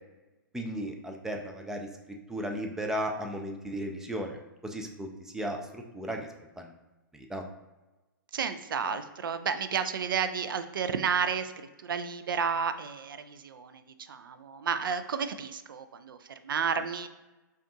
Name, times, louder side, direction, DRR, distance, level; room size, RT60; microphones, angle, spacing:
voice 1, 0.5-6.8 7.1-7.5, right 1 dB, 5° right, 2 dB, 0.4 m, -36 dB
voice 2, 8.3-17.1, right 6 dB, 80° right, 10 dB, 0.4 m, -32 dB
5.1 x 2.4 x 2.7 m, 1.1 s
hypercardioid pair, 125°, 11 cm